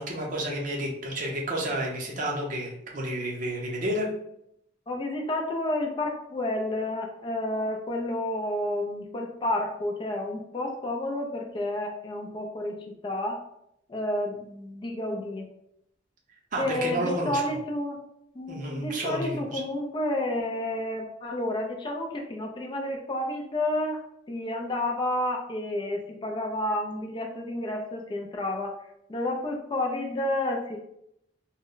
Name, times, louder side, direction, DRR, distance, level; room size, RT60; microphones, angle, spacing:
voice 1, 0.0-4.1 16.5-17.4 18.5-19.6, right 1 dB, 45° right, -1 dB, 0.6 m, -30 dB
voice 2, 4.9-12.8 13.0-13.4 13.9-15.5 16.6-18.0 18.3-24.0 24.3-28.7 29.1-30.8, left 1 dB, 25° left, 1 dB, 0.3 m, -30 dB
2.1 x 2.0 x 3.7 m, 0.77 s
head